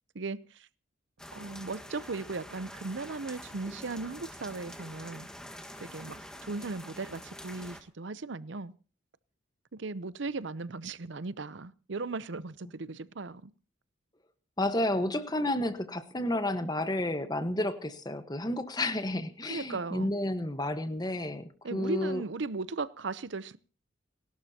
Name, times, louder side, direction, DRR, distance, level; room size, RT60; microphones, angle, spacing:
voice 1, 0.1-0.7 1.3-5.3 5.8-8.7 9.7-13.5 19.5-20.1 21.6-23.6, right 3 dB, 70° right, 0.7 m, -37 dB
sound 1, 1.2-7.8, equal, 5° left, 1.6 m, -46 dB
voice 2, 14.6-22.2, left 1 dB, 20° left, 1.2 m, -31 dB
29.5 x 12.5 x 2.9 m
head